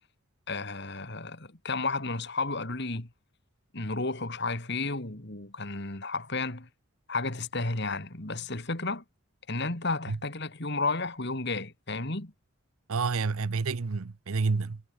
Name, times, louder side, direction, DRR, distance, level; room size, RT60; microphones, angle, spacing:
voice 1, 0.5-3.1 3.7-6.7 7.1-9.0 9.5-12.3, left 3 dB, 50° left, 2.4 m, -32 dB
voice 2, 12.9-14.8, right 4 dB, 80° right, 0.7 m, -29 dB
head